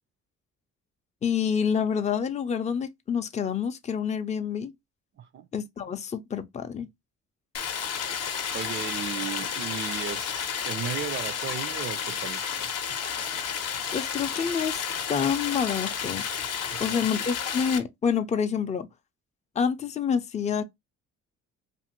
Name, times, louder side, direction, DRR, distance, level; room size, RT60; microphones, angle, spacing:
voice 1, 1.2-4.7 5.5-6.9 13.9-14.8 15.1-16.3 16.8-18.9 19.6-20.6, left 7 dB, 25° left, 0.4 m, -27 dB
voice 2, 5.2-5.5 8.5-12.7 16.7-17.1, right 7 dB, 40° right, 0.4 m, -36 dB
Stream, 7.5-17.8, left 7 dB, 55° left, 0.7 m, -31 dB
2.5 x 2.5 x 2.8 m
cardioid pair, 90°, 30 cm